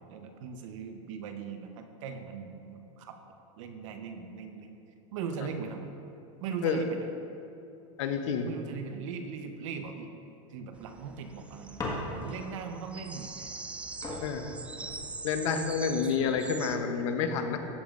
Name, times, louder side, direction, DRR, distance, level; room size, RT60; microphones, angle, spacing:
voice 1, 0.1-3.2 3.6-4.8 5.1-5.9 6.4-7.1 8.4-10.1 10.5-13.5 16.9-17.3, right 6 dB, 75° right, 6 dB, 0.9 m, -39 dB
voice 2, 8.0-8.5 14.2-14.6 15.2-17.6, left 6 dB, 75° left, 7 dB, 0.8 m, -29 dB
sound 1, 10.7-16.8, right 3 dB, 10° right, 0.3 m, -43 dB
sound 2, 11.8-12.5 13.6-13.7 14.0-15.5 16.3-16.7, left 1 dB, 20° left, 1.5 m, -38 dB
14.5 x 7.1 x 2.5 m, 2.9 s
supercardioid pair, 135°, 16 cm